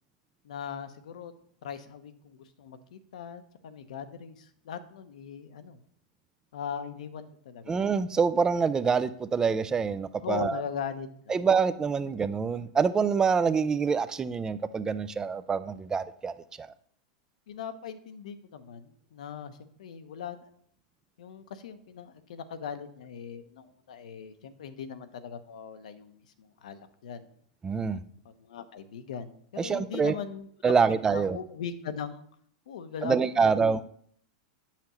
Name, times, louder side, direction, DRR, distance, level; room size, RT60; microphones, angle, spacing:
voice 1, 0.4-1.3 1.6-5.8 6.5-7.7 10.2-11.3 17.5-20.5 21.2-27.3 28.2-29.3 29.6-30.5 31.1-32.2 32.7-33.5, left 7 dB, 80° left, 11 dB, 0.8 m, -40 dB
voice 2, 7.7-10.6 11.3-16.7 27.6-28.0 29.6-30.2 30.6-31.4 33.0-33.8, right 5 dB, 15° right, 13 dB, 0.4 m, -26 dB
8.4 x 5.8 x 3.0 m, 0.63 s
hypercardioid pair, 120°, 4 cm